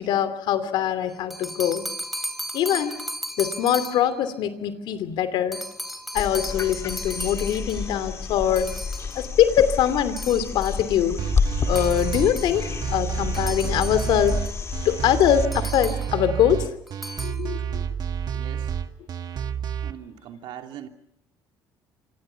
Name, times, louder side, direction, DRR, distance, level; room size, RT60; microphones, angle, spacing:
voice 1, 0.0-1.9 2.5-3.0 3.4-5.6 6.1-8.7 9.1-11.2 11.7-14.4 14.8-16.7 17.2-17.8, left 10 dB, 75° left, 12 dB, 2.8 m, -23 dB
sound 1, 1.1-4.2 5.5-8.0 8.6-9.3 10.2-10.9 11.8-12.6 13.3-14.6 15.5-16.2 16.9-17.4, equal, ahead, 3.0 m, -36 dB
sound 2, 6.2-15.5 17.6-17.7, left 5 dB, 35° left, 1.5 m, -30 dB
sound 3, 11.2-19.9, right 8 dB, 55° right, 1.8 m, -29 dB
voice 2, 18.3-18.7 19.8-20.9, right 10 dB, 75° right, 4 dB, 2.8 m, -41 dB
27.0 x 26.0 x 5.8 m, 0.80 s
supercardioid pair, 90°, 8 cm